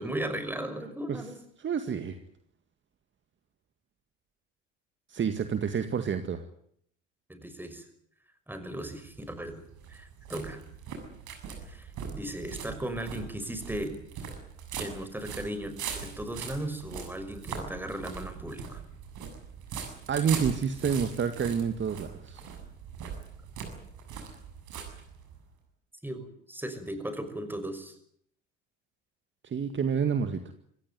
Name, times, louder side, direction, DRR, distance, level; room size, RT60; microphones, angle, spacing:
voice 1, 0.0-1.4 7.3-7.8 8.5-9.6 9.9-10.6 11.6-13.9 14.8-18.8 26.0-28.0, right 1 dB, 5° right, 9 dB, 5.8 m, -37 dB
voice 2, 1.6-2.2 5.1-6.4 20.1-22.4 29.4-30.4, right 7 dB, 30° right, 9 dB, 2.0 m, -28 dB
sound 1, 9.0-25.5, right 7 dB, 55° right, 7.2 m, -41 dB
26.0 x 16.0 x 9.4 m, 0.68 s
hypercardioid pair, 70°, 36 cm